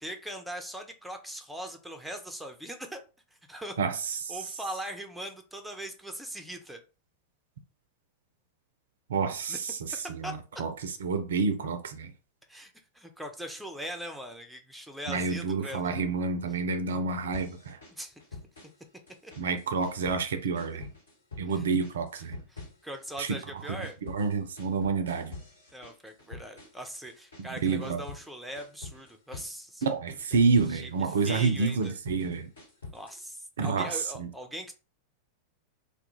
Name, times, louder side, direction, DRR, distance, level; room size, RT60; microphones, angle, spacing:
voice 1, 0.0-3.0 3.5-3.8 4.3-6.8 9.5-9.6 10.2-10.6 12.5-15.8 17.9-18.1 19.2-19.3 21.5-21.6 22.5-24.0 25.7-29.8 30.7-30.9 31.3-31.9 32.9-34.7, equal, ahead, 0.4 m, -40 dB
voice 2, 3.8-4.4 9.1-12.1 15.1-17.8 19.4-20.9 21.4-22.4 23.2-23.8 24.0-25.4 27.4-28.0 29.8-32.5 33.6-34.3, right 4 dB, 65° right, 0.3 m, -29 dB
sound 1, 17.3-18.8 19.1-20.3 20.6-21.5 21.8-23.3 23.6-28.3 28.5-29.5 29.8-31.2 31.6-33.3, left 4 dB, 70° left, 1.3 m, -46 dB
2.2 x 2.0 x 3.0 m
figure-of-eight pair, 90°, 0 cm